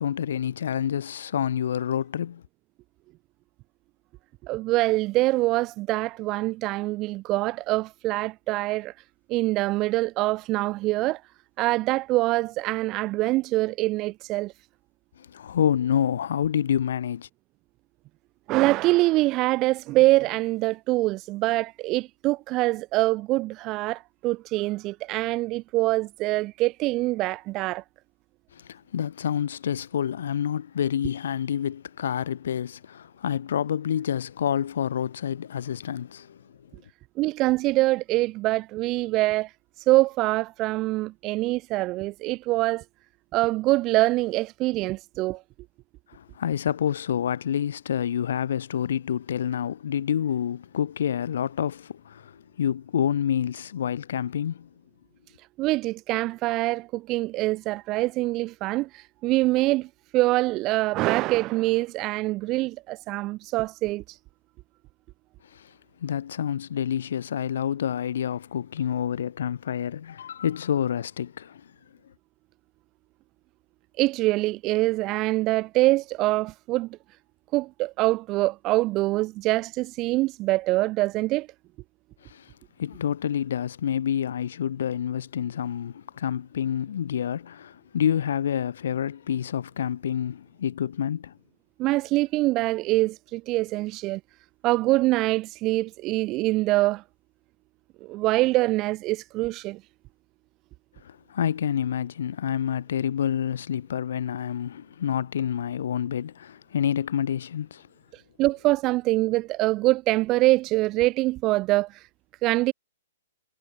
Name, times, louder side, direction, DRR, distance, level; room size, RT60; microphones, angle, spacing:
voice 1, 0.0-2.4 15.2-17.3 28.5-36.4 46.1-54.7 65.5-65.7 66.0-71.7 82.2-82.5 82.8-91.3 101.0-107.9, left 9 dB, 65° left, 0.6 m, -28 dB
voice 2, 4.4-8.9 9.3-11.2 11.6-14.5 18.5-27.8 37.2-39.5 39.9-42.8 43.3-45.4 55.6-64.2 74.0-77.0 77.5-81.5 91.8-94.2 94.6-97.0 98.0-99.8 108.4-112.0 112.4-112.7, right 19 dB, 25° right, 0.4 m, -24 dB
hypercardioid pair, 160°, 0 cm